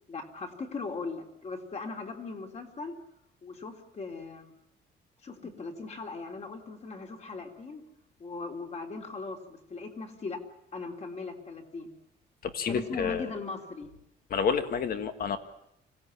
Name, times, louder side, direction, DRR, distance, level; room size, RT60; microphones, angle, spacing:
voice 1, 0.1-2.9 3.4-4.5 5.2-7.8 8.2-10.4 10.7-11.9 12.7-13.9, left 3 dB, 35° left, 2 dB, 3.4 m, -39 dB
voice 2, 12.4-13.3 14.3-15.4, left 6 dB, 55° left, 8 dB, 1.9 m, -29 dB
25.5 x 17.0 x 8.9 m, 0.78 s
cardioid pair, 140°, 19 cm